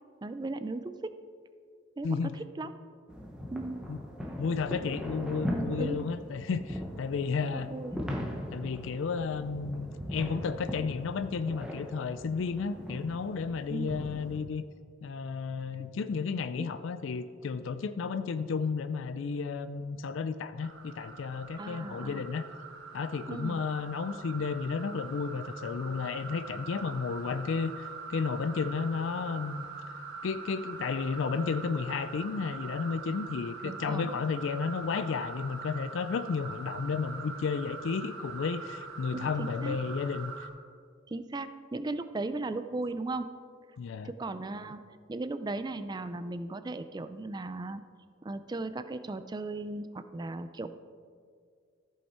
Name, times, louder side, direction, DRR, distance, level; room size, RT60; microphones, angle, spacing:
voice 1, 0.2-1.1 2.0-2.3 2.6-2.7 3.5-3.9 5.8-6.0 7.5-8.0 13.7-13.9 15.8-15.9 16.6-16.7 21.6-22.3 23.3-23.6 33.6-34.1 39.1-39.8 41.1-43.3 44.0-44.8 45.1-47.8 48.2-50.7, right 2 dB, 20° right, 11 dB, 0.3 m, -36 dB
voice 2, 2.0-2.4 3.9-4.0 4.4-7.7 8.5-14.6 15.0-22.4 22.9-29.6 30.2-40.5 43.8-44.1, left 5 dB, 70° left, 12 dB, 0.4 m, -32 dB
sound 1, 3.1-14.4, equal, 5° right, 0.9 m, -39 dB
sound 2, 20.6-40.5, right 4 dB, 85° right, 1.2 m, -43 dB
14.5 x 5.5 x 4.3 m, 2.1 s
head